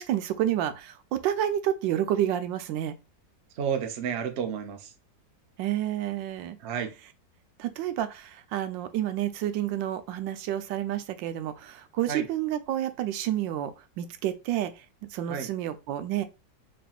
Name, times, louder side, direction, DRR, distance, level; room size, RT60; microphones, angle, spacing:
voice 1, 0.0-2.9 5.6-6.6 7.6-14.8 15.1-16.2, right 12 dB, 90° right, 1.3 m, -29 dB
voice 2, 3.5-4.9 6.6-6.9 12.1-12.3 15.3-15.5, right 7 dB, 60° right, 0.7 m, -31 dB
4.2 x 3.4 x 2.3 m
omnidirectional pair, 2.0 m